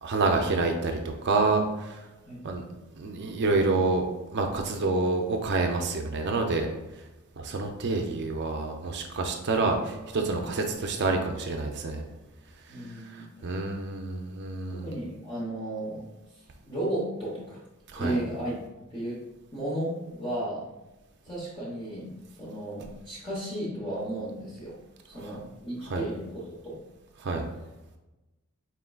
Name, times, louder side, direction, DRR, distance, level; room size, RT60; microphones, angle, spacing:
voice 1, 0.0-2.0 2.4-2.6 2.9-4.1 4.3-6.7 7.4-12.0 12.9-14.9 17.9-18.2 25.2-25.4 25.9-26.1 27.2-27.5, right 3 dB, 50° right, 3 dB, 0.4 m, -28 dB
voice 2, 12.7-13.3 14.7-16.0 16.4-17.6 18.0-18.5 18.9-19.2 19.5-20.7 21.2-22.1 22.4-24.8 25.1-26.8, right 1 dB, 20° left, -7 dB, 0.9 m, -34 dB
4.4 x 3.6 x 2.3 m, 1.0 s
head